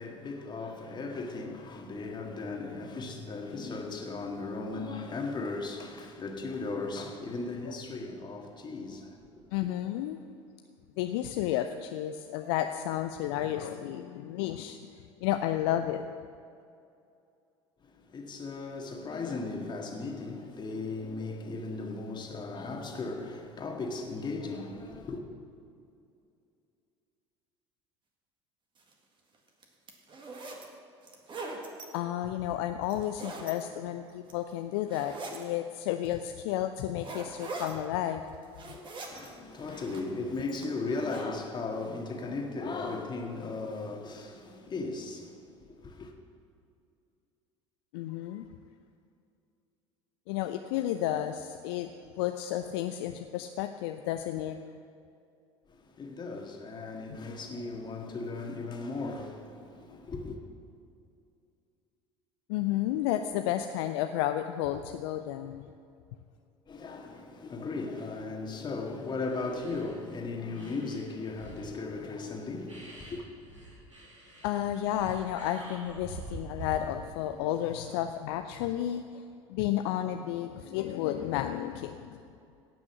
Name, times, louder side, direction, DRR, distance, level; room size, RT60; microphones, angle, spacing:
voice 1, 0.0-9.6 17.8-25.2 39.1-46.1 55.7-60.4 66.7-73.3, left 3 dB, 30° left, 1.8 m, -37 dB
voice 2, 9.5-10.2 11.0-14.8 15.2-16.0 31.9-38.2 47.9-48.5 50.3-51.9 52.2-54.6 57.1-57.2 62.5-65.7 74.4-79.2 79.5-82.2, left 12 dB, 60° left, 0.5 m, -32 dB
sound 1, 28.8-28.9 29.5-30.6 31.0-31.9 32.8-33.5 34.1-34.5 34.9-35.4 36.0-36.1 37.0-37.7 38.3-39.3 39.6-40.2 40.6-41.2, right 3 dB, 30° right, 1.8 m, -41 dB
sound 2, 67.9-68.1 68.7-68.8 69.1-70.2 70.5-71.7 72.3-72.4 72.7-77.1 77.5-78.0 78.7-79.0, right 1 dB, 85° right, 2.1 m, -47 dB
17.5 x 6.1 x 6.0 m
figure-of-eight pair, 65°, 15 cm